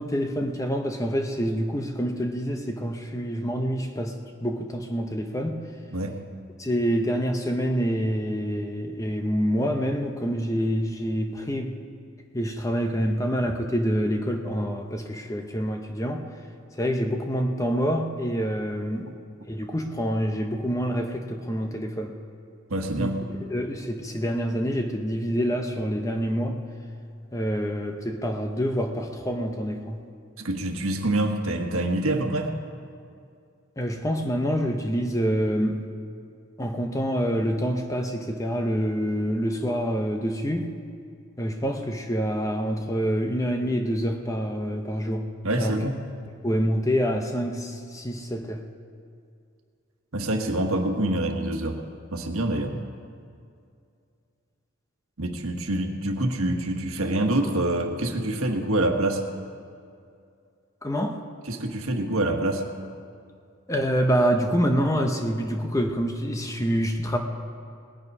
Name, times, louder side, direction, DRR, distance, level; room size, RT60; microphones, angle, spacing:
voice 1, 0.0-4.1 4.4-5.6 6.6-11.7 12.3-16.2 16.8-19.1 19.5-22.1 23.0-23.1 23.5-26.6 27.3-30.0 33.8-35.8 36.6-40.7 41.4-45.3 45.6-45.8 46.4-48.6 60.8-61.2 63.7-67.2, equal, 15° left, 4 dB, 0.8 m, -26 dB
voice 2, 5.9-6.2 19.1-19.2 22.7-23.3 30.4-32.5 45.4-46.0 50.1-51.8 52.1-52.8 55.2-59.2 61.4-62.7, right 1 dB, 80° right, 3 dB, 1.4 m, -26 dB
19.0 x 9.7 x 5.4 m, 2.4 s
head